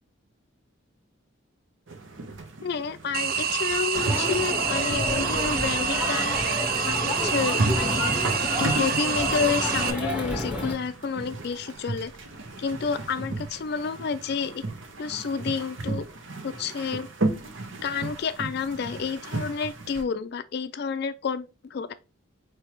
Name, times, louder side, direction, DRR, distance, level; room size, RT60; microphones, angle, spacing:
sound 1, 1.9-20.0, right 2 dB, 75° right, 0.9 m, -35 dB
voice 1, 2.6-6.4 6.9-8.3 8.6-12.1 12.6-14.6 15.0-16.1 16.4-17.1 17.8-21.9, left 5 dB, 55° left, 0.3 m, -30 dB
sound 2, 3.1-9.9, right 7 dB, 45° right, 0.4 m, -27 dB
Crowd, 3.9-10.7, left 1 dB, 5° right, 0.8 m, -30 dB
4.5 x 3.3 x 3.0 m
head